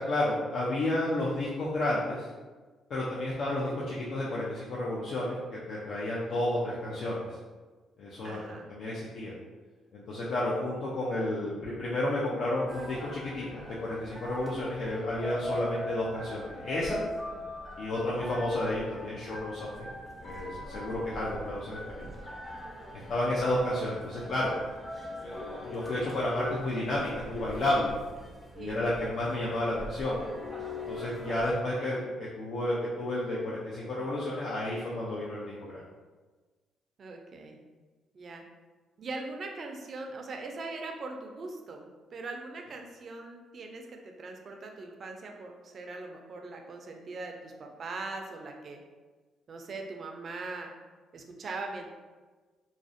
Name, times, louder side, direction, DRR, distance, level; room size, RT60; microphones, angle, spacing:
voice 1, 0.0-2.3 2.9-7.2 8.0-9.3 9.9-17.0 17.8-19.9 20.2-22.1 23.1-24.5 25.1-27.9 28.6-30.2 30.9-35.8, left 1 dB, 65° left, -6 dB, 0.4 m, -31 dB
voice 2, 8.2-8.7 23.2-23.6 28.5-28.8 31.5-31.9 37.0-37.6 38.1-38.4 39.0-48.8 49.5-50.7 51.1-51.9, right 3 dB, 50° right, 3 dB, 0.3 m, -41 dB
sound 1, 12.7-31.5, left 1 dB, 10° left, 0.5 m, -41 dB
2.4 x 2.0 x 2.5 m, 1.3 s
cardioid pair, 90°, 0 cm